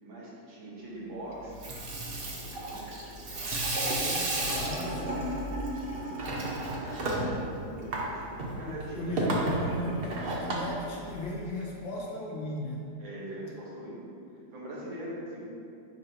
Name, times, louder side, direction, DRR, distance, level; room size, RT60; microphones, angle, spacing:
voice 1, 0.0-1.6 1.9-3.6 4.5-5.3 5.7-9.1 13.0-14.0 14.5-15.4, right 1 dB, 85° right, -7 dB, 2.2 m, -43 dB
Water tap faucet / Sink (filling or washing), 1.4-11.6, right 2 dB, 50° right, 0.6 m, -33 dB
voice 2, 3.6-5.4 8.7-12.9, left 1 dB, 85° left, -3 dB, 1.8 m, -37 dB
8.4 x 2.8 x 5.1 m, 2.5 s
omnidirectional pair, 2.0 m